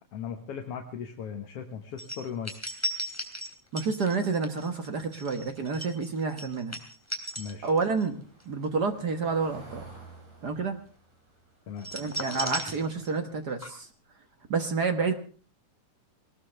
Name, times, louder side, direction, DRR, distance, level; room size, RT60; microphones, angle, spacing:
voice 1, 0.1-2.5 7.4-7.7 11.7-11.9, left 7 dB, 55° left, 4 dB, 2.1 m, -37 dB
sound 1, 2.0-8.1 8.4-8.6 11.8-13.3 13.6-13.7, right 1 dB, 5° left, 2.9 m, -36 dB
voice 2, 3.7-6.8 7.6-9.8 10.4-10.8 11.9-13.9 14.5-15.1, right 4 dB, 55° right, 7 dB, 1.1 m, -29 dB
Car passing by / Engine, 6.7-13.2 13.6-13.8 14.1-14.2, right 3 dB, 70° right, 7.6 m, -53 dB
20.0 x 20.0 x 3.3 m, 0.39 s
omnidirectional pair, 3.6 m